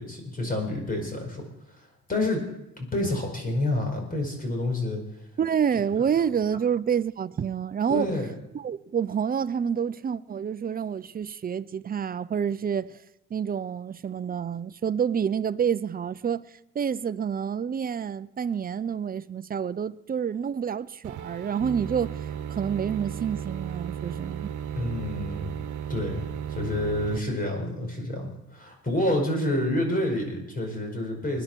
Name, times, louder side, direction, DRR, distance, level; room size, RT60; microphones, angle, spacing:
voice 1, 0.0-1.4 1.8-2.4 2.8-5.0 7.9-8.3 24.7-25.5 25.9-31.4, left 1 dB, 30° left, 4.9 m, -28 dB
voice 2, 5.4-8.1 8.5-12.9 13.3-16.4 16.7-22.1 22.5-24.5, right 7 dB, 30° right, 0.5 m, -28 dB
sound 1, 21.0-27.2, right 9 dB, 80° right, 1.1 m, -35 dB
20.5 x 10.5 x 4.5 m
cardioid pair, 90°, 30 cm